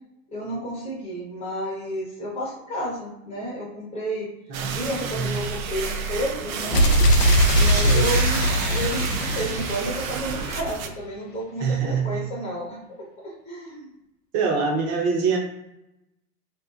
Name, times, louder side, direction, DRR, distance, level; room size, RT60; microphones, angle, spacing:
voice 1, 0.3-4.3 4.7-6.9 7.5-13.9, right 1 dB, 15° left, -4 dB, 0.6 m, -31 dB
voice 2, 4.5-4.8 5.1-5.4 7.7-8.1 11.6-12.2 14.3-15.4, right 5 dB, 30° right, 0 dB, 0.7 m, -25 dB
sound 1, 4.5-10.9, right 6 dB, 65° right, 0.5 m, -29 dB
sound 2, 6.7-10.6, equal, 85° left, 0.6 m, -20 dB
2.6 x 2.4 x 2.4 m, 0.90 s
hypercardioid pair, 105°, 47 cm